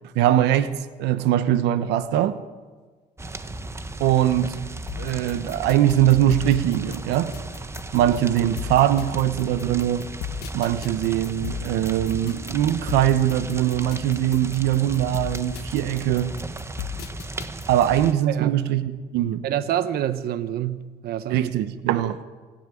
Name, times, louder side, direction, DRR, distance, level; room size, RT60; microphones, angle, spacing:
voice 1, 0.1-0.7 1.0-2.4 4.0-4.5 5.0-7.3 7.9-10.0 10.5-16.3 17.7-19.4 21.3-22.2, right 12 dB, 90° right, 12 dB, 1.1 m, -21 dB
Engine, 3.2-13.8, right 1 dB, ahead, 2.9 m, -45 dB
sound 1, 3.2-18.1, right 2 dB, 15° right, 1.1 m, -36 dB
sound 2, 4.9-18.0, left 10 dB, 70° left, 1.2 m, -37 dB
voice 2, 18.3-18.6 19.4-21.5 21.9-22.1, right 11 dB, 65° right, 12 dB, 1.0 m, -27 dB
27.0 x 10.5 x 10.0 m, 1.4 s
cardioid pair, 110°, 17 cm